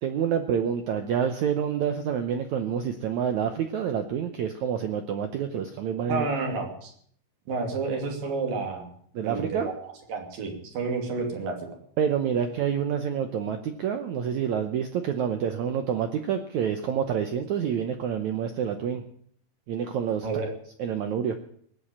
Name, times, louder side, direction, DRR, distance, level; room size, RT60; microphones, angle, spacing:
voice 1, 0.0-6.2 9.1-9.7 12.0-19.0 19.7-20.3 20.8-21.4, right 8 dB, 80° right, 7 dB, 1.7 m, -28 dB
voice 2, 6.1-6.9 7.5-8.9 9.2-11.6 20.2-20.5, right 4 dB, 60° right, 3 dB, 4.2 m, -30 dB
18.5 x 8.2 x 8.6 m, 0.62 s
omnidirectional pair, 4.5 m